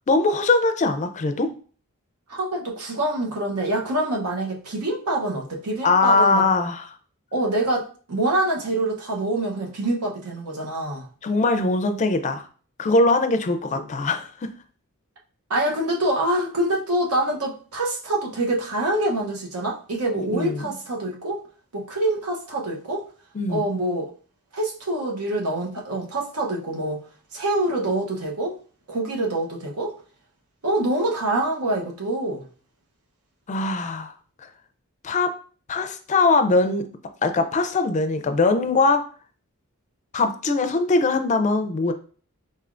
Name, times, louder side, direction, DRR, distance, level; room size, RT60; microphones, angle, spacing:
voice 1, 0.1-1.5 5.8-6.9 11.2-12.4 12.8-14.5 20.2-20.6 23.3-23.7 33.5-34.1 34.4-34.5 35.0-35.3 35.7-36.8 37.2-39.0 40.1-41.9, left 3 dB, 35° left, 0.4 m, -21 dB
voice 2, 2.3-6.4 7.3-11.0 13.7-13.8 15.5-21.4 21.7-23.0 23.5-24.1 24.5-27.0 27.3-28.5 28.9-29.9 30.6-32.4, right 1 dB, 85° right, 0.9 m, -25 dB
4.1 x 3.3 x 2.5 m
head